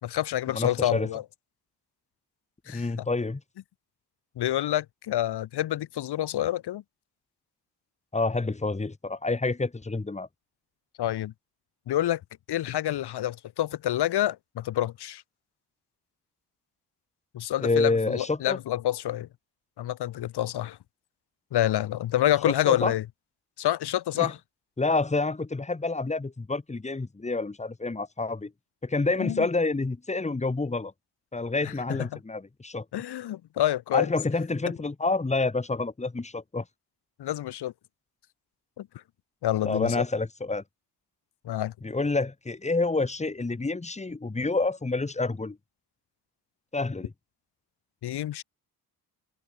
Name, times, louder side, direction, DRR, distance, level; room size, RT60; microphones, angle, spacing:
voice 1, 0.0-1.2 2.7-3.1 4.4-6.8 11.0-11.3 11.9-12.2 12.5-15.2 17.3-19.3 19.8-20.8 21.5-23.0 23.6-24.4 29.2-29.5 31.6-32.2 32.9-34.1 37.2-37.7 38.8-38.9 39.4-40.0 41.4-41.7 48.0-48.4, left 12 dB, 90° left, 3.4 m, -28 dB
voice 2, 0.5-1.1 2.7-3.4 8.1-10.3 17.6-18.6 22.5-22.9 24.2-24.3 24.8-28.5 28.8-30.9 31.3-32.8 33.9-36.6 39.6-40.6 41.8-45.6 46.7-47.1, left 3 dB, 15° left, 2.5 m, -28 dB
cardioid pair, 115°, 39 cm